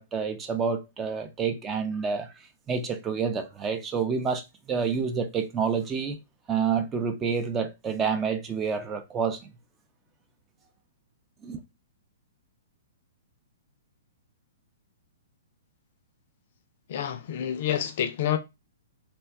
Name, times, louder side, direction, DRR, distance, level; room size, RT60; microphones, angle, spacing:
voice 1, 0.0-2.3 2.7-6.2 6.5-9.4 11.4-11.6, right 6 dB, 20° right, 0.4 m, -28 dB
voice 2, 16.9-18.4, left 10 dB, 55° left, 0.4 m, -28 dB
2.7 x 2.3 x 2.2 m
hypercardioid pair, 125°, 0 cm